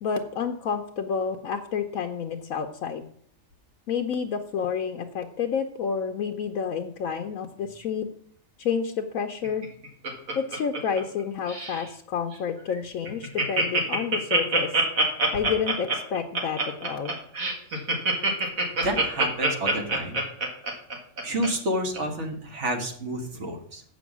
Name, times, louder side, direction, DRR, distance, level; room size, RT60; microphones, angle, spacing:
voice 1, 0.0-3.0 3.9-8.1 8.6-9.7 10.3-14.7 15.3-17.1, left 6 dB, 80° left, 5 dB, 1.1 m, -29 dB
Laughter, 9.4-11.2 11.5-11.8 12.3-12.4 12.7-12.8 13.0-21.5 21.9-22.0, right 3 dB, 75° right, 2.2 m, -25 dB
voice 2, 18.8-20.2 21.2-23.8, right 1 dB, 60° right, 4 dB, 1.7 m, -29 dB
7.6 x 6.2 x 7.2 m, 0.63 s
omnidirectional pair, 1.4 m